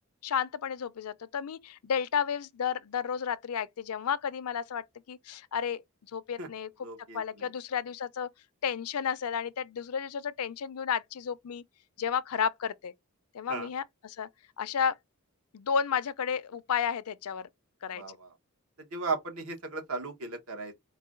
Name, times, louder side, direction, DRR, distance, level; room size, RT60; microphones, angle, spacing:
voice 1, 0.2-5.8 6.1-6.7 7.1-8.3 8.6-11.6 12.0-12.9 13.3-14.3 14.6-15.0 15.5-17.5 17.8-18.0, left 7 dB, 85° left, 0.5 m, -32 dB
voice 2, 6.8-7.5 13.5-13.7 17.9-18.3 18.9-20.8, right 3 dB, 75° right, 1.2 m, -36 dB
4.7 x 2.2 x 3.6 m
head